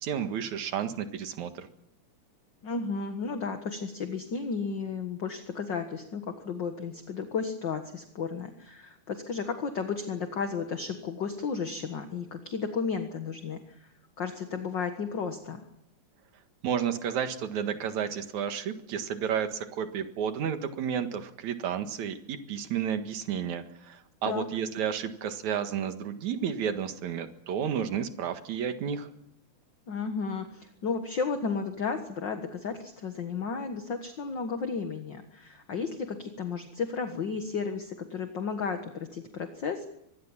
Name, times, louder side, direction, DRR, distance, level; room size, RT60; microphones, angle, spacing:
voice 1, 0.0-1.7 16.6-29.1, right 8 dB, 70° right, 7 dB, 3.0 m, -32 dB
voice 2, 2.6-13.9 14.2-15.6 24.3-24.5 29.9-39.9, left 5 dB, 45° left, 6 dB, 1.8 m, -33 dB
24.0 x 21.5 x 7.4 m, 0.79 s
omnidirectional pair, 3.5 m